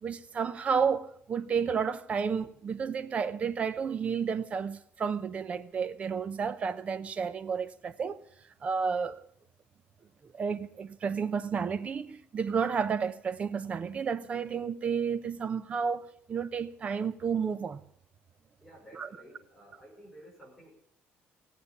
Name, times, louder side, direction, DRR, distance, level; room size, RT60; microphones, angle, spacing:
voice 1, 0.0-8.2 8.6-9.2 10.3-17.8 18.9-19.1, right 6 dB, 30° right, 0.8 m, -31 dB
voice 2, 18.6-20.7, equal, ahead, 5.8 m, -53 dB
17.5 x 8.5 x 8.3 m
cardioid pair, 160°, 4 cm